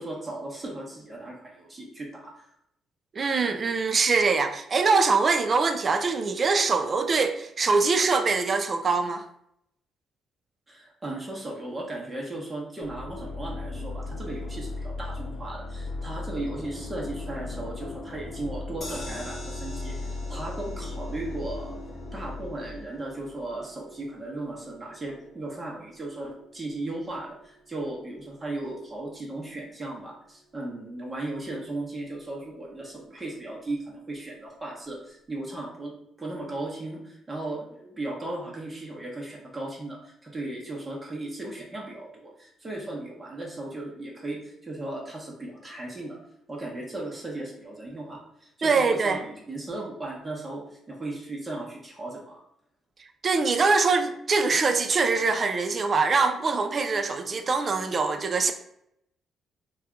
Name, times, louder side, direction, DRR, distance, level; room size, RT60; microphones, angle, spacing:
voice 1, 0.0-2.5 10.7-21.8 22.1-35.9 36.2-46.2 46.5-52.4, right 2 dB, 25° right, 0.9 m, -36 dB
voice 2, 3.1-9.2 48.6-49.2 53.2-58.5, right 4 dB, 40° right, 0.4 m, -23 dB
sound 1, 12.8-23.6, left 2 dB, 65° left, 0.4 m, -37 dB
sound 2, 18.8-31.0 31.4-31.5 31.8-31.9, equal, 25° left, 1.0 m, -47 dB
2.7 x 2.3 x 3.6 m
cardioid pair, 90°, 0 cm